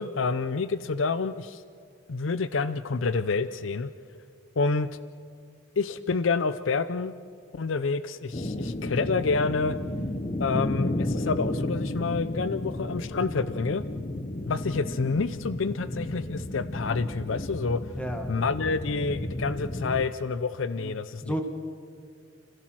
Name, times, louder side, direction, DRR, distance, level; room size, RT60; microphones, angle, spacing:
voice 1, 0.0-1.6 2.1-3.9 4.6-4.9 5.8-7.1 7.5-9.8 10.4-13.8 14.4-17.8 18.3-21.4, left 4 dB, 90° left, 14 dB, 0.6 m, -28 dB
sound 1, 8.3-20.1, left 1 dB, 30° left, 0.8 m, -32 dB
voice 2, 18.0-18.3 20.8-21.0 21.2-21.4, equal, 5° left, 4 dB, 1.5 m, -32 dB
30.0 x 16.0 x 6.3 m, 2.4 s
head